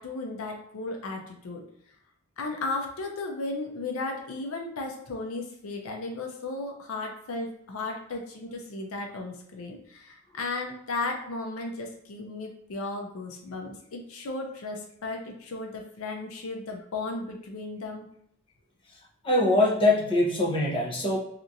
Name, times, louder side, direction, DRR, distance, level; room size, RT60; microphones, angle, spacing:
voice 1, 0.0-1.6 2.4-18.1, left 3 dB, 80° left, 2 dB, 0.5 m, -35 dB
voice 2, 19.2-21.2, left 2 dB, 25° left, -4 dB, 0.7 m, -23 dB
2.8 x 2.4 x 2.5 m, 0.71 s
head